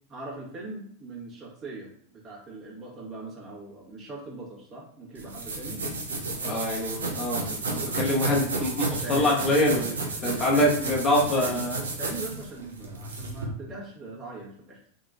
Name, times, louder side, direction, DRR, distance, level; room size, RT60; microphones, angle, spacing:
voice 1, 0.1-5.8 9.0-9.5 9.8-11.0 11.3-11.6 12.0-14.8, right 2 dB, 30° right, -4 dB, 1.5 m, -40 dB
sound 1, 5.2-13.5, right 3 dB, 70° right, 0.7 m, -32 dB
voice 2, 6.4-9.9 10.2-11.8, left 1 dB, 25° left, -3 dB, 0.9 m, -25 dB
3.7 x 3.6 x 2.5 m, 0.62 s
figure-of-eight pair, 90°, 0 cm